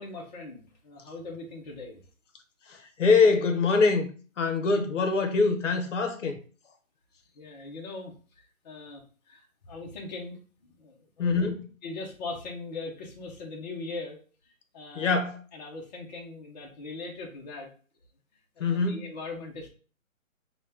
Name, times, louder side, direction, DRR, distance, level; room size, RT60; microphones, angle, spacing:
voice 1, 0.0-2.0 7.3-11.5 11.8-15.2 15.5-17.7 18.6-19.7, left 3 dB, 30° left, 0.6 m, -40 dB
voice 2, 2.7-4.1 4.4-6.4 11.2-11.5 15.0-15.4 18.6-19.0, left 4 dB, 60° left, 0.8 m, -24 dB
4.2 x 2.2 x 3.3 m
hypercardioid pair, 150°, 41 cm